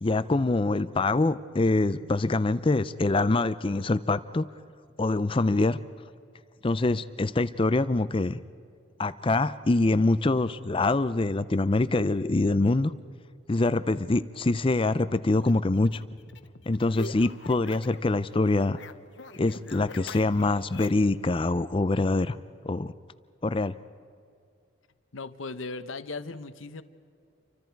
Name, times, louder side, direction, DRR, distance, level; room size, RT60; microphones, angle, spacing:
voice 1, 0.0-4.5 5.0-5.8 6.6-8.4 9.0-12.9 13.5-16.0 16.7-18.8 19.4-22.4 22.6-22.9 23.4-23.7, left 2 dB, 25° left, 14 dB, 0.5 m, -25 dB
sound 1, 15.4-18.1 18.4-21.2, left 3 dB, 65° left, 1.0 m, -44 dB
voice 2, 25.1-26.8, left 3 dB, 85° left, 11 dB, 1.0 m, -37 dB
29.5 x 25.0 x 4.7 m, 2.4 s
head